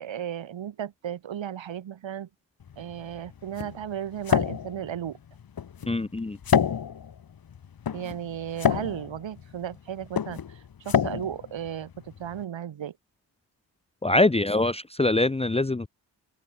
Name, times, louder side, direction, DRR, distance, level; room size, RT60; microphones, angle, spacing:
voice 1, 0.0-2.3 2.8-5.2 7.9-12.9, right 9 dB, 65° right, 4.0 m, -35 dB
sound 1, 2.6-12.4, left 8 dB, 45° left, 1.6 m, -29 dB
voice 2, 5.9-6.4 14.0-15.9, left 2 dB, 10° left, 0.9 m, -23 dB
open air
supercardioid pair, 45°, 48 cm